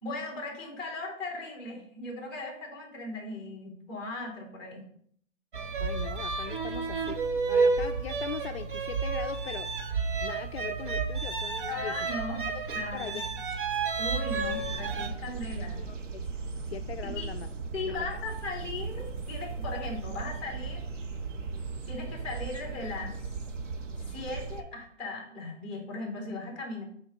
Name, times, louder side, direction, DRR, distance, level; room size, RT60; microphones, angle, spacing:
voice 1, 0.0-4.8 11.7-12.4 12.7-13.2 14.0-15.8 17.0-17.3 17.7-20.8 21.9-23.2 24.1-26.8, left 3 dB, ahead, 0 dB, 1.9 m, -38 dB
Violin music, 5.5-15.1, right 4 dB, 40° right, 1.0 m, -31 dB
voice 2, 5.8-7.2 7.5-9.7 10.2-12.0 12.5-12.6 12.9-13.2 15.8-16.2 16.7-17.5 17.8-18.1 18.6-18.7, left 8 dB, 55° left, 7 dB, 0.5 m, -40 dB
sound 1, 14.3-24.6, right 4 dB, 70° right, 1.3 m, -37 dB
8.7 x 4.5 x 5.3 m, 0.63 s
hypercardioid pair, 165°, 38 cm